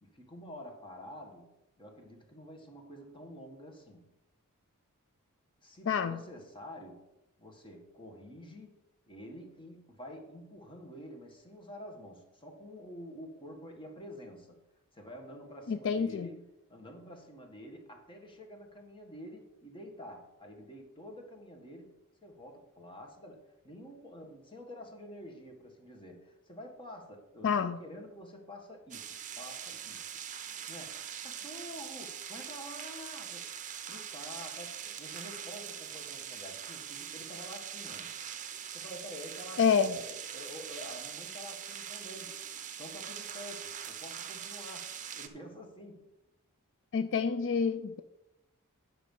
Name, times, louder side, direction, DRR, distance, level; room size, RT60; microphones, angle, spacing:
voice 1, 0.0-1.5 1.8-4.1 5.6-7.0 7.4-14.6 14.9-30.1 30.7-33.5 33.9-38.3 38.7-42.4 42.8-46.0, equal, 25° left, 2 dB, 1.5 m, -48 dB
voice 2, 5.9-6.2 15.7-16.3 27.4-27.8 39.6-40.0 46.9-48.0, left 6 dB, 60° left, 11 dB, 0.4 m, -28 dB
sound 1, 28.9-45.3, right 8 dB, 35° right, 0.7 m, -42 dB
9.9 x 6.1 x 5.4 m, 0.95 s
head